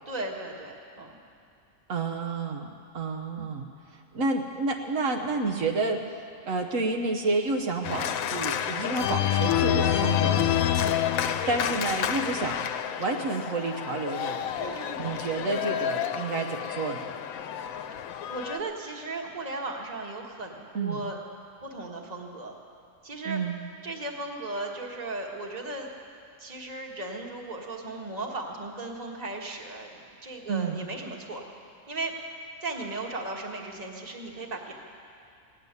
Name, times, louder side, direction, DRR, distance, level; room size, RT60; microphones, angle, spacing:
voice 1, 0.1-1.2 14.6-15.0 18.3-21.2 21.6-22.5 23.0-23.4 23.8-25.9 26.4-31.4 31.9-32.1 32.6-34.7, right 2 dB, 30° right, 1 dB, 1.4 m, -36 dB
voice 2, 1.9-3.7 4.1-10.5 11.5-12.7 13.0-14.5 15.0-17.1 20.7-21.0 23.2-23.6 30.5-30.8, right 3 dB, 75° right, 3 dB, 1.3 m, -30 dB
Organ, 7.8-18.6, left 10 dB, 85° left, 1.1 m, -28 dB
17.5 x 8.2 x 9.6 m, 2.5 s
omnidirectional pair, 1.4 m